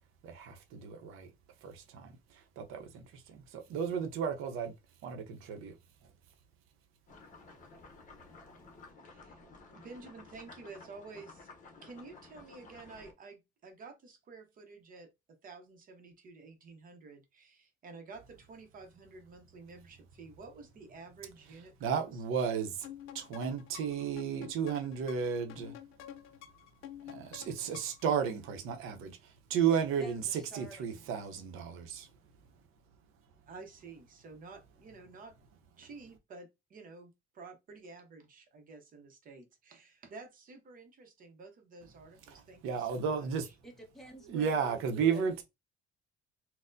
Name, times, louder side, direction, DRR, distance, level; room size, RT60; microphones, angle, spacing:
voice 1, 0.2-1.3 1.6-4.7 5.0-5.7 21.8-22.9 23.1-25.8 27.1-32.1 42.6-43.5 44.3-45.4, right 7 dB, 85° right, 0.7 m, -33 dB
sound 1, 7.1-13.1, left 3 dB, 40° left, 0.8 m, -54 dB
voice 2, 9.0-9.4 9.7-11.5 11.8-22.2 33.5-35.4 35.8-43.5, right 3 dB, 45° right, 0.7 m, -51 dB
sound 2, 22.8-28.1, left 11 dB, 85° left, 0.5 m, -50 dB
voice 3, 29.9-31.0 43.6-45.4, right 2 dB, ahead, 0.9 m, -49 dB
4.1 x 2.1 x 2.5 m
cardioid pair, 150°, 21 cm